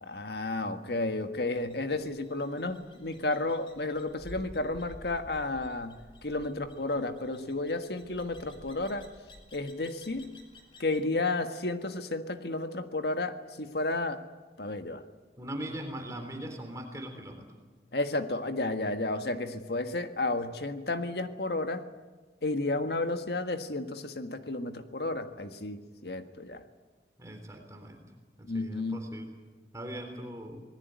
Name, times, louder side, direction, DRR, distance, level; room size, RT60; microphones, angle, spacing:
voice 1, 0.0-9.1 9.5-10.3 10.8-14.2 14.6-15.0 17.9-21.8 22.4-26.6 28.4-29.1, left 2 dB, 70° left, 8 dB, 1.6 m, -32 dB
sound 1, 1.5-11.1, left 1 dB, 30° left, 3.1 m, -52 dB
voice 2, 15.4-17.5 27.2-28.0 28.4-29.3 29.7-30.6, right 1 dB, 20° right, 4 dB, 3.6 m, -40 dB
26.5 x 20.0 x 9.4 m, 1.3 s
head